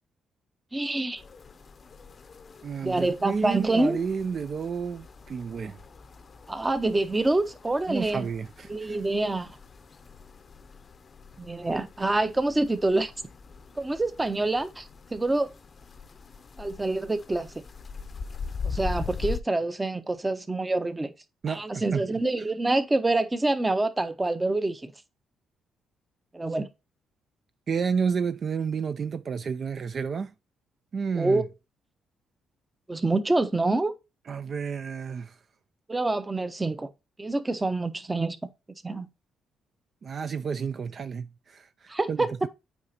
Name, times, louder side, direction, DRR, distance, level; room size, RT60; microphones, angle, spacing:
voice 1, 0.7-1.2 2.8-4.0 6.5-8.3 8.7-9.6 11.4-13.1 13.8-15.5 16.6-17.5 18.6-21.1 21.5-24.9 26.3-26.7 31.2-31.5 32.9-33.9 35.9-36.9 37.2-38.4 38.8-39.1 41.9-42.3, right 2 dB, 15° right, 0.7 m, -26 dB
sound 1, 1.2-19.4, left 5 dB, 40° left, 0.6 m, -41 dB
voice 2, 2.6-5.8 7.9-9.0 21.4-22.0 27.7-30.3 30.9-31.4 34.3-35.4 40.0-42.5, right 6 dB, 50° right, 0.4 m, -31 dB
8.3 x 4.9 x 2.8 m
cardioid pair, 90°, 0 cm